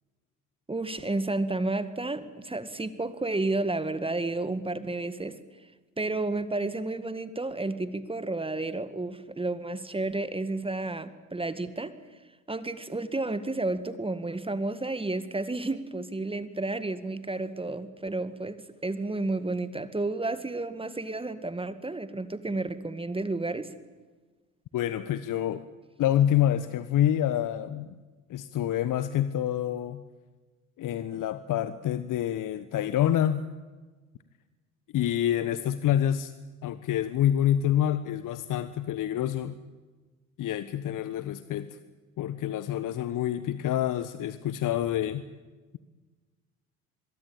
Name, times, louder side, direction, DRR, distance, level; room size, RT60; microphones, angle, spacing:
voice 1, 0.7-5.4 6.0-12.0 12.5-18.6 18.8-23.7, right 2 dB, 15° right, 12 dB, 2.0 m, -31 dB
voice 2, 24.7-25.6 26.0-28.0 28.3-30.0 30.8-33.4 34.9-36.3 36.6-39.6 40.4-41.8 42.2-45.2, left 11 dB, 45° left, 13 dB, 1.3 m, -27 dB
26.0 x 22.5 x 9.0 m, 1.3 s
hypercardioid pair, 65°, 42 cm